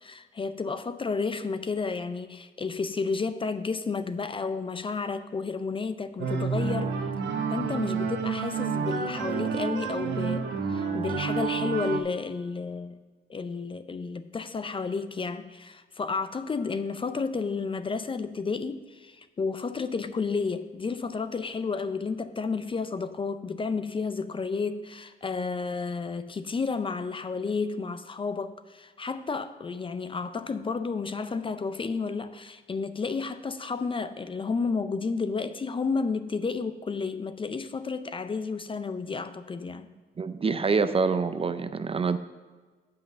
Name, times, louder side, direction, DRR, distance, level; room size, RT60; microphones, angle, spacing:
voice 1, 0.0-7.0 7.5-13.0 13.3-39.9, left 4 dB, 25° left, 11 dB, 0.5 m, -31 dB
sound 1, 6.2-12.0, right 6 dB, 65° right, 1.1 m, -29 dB
voice 2, 40.2-42.2, right 4 dB, 30° right, 11 dB, 0.5 m, -26 dB
7.8 x 5.7 x 6.1 m, 1.4 s
cardioid pair, 90°, 20 cm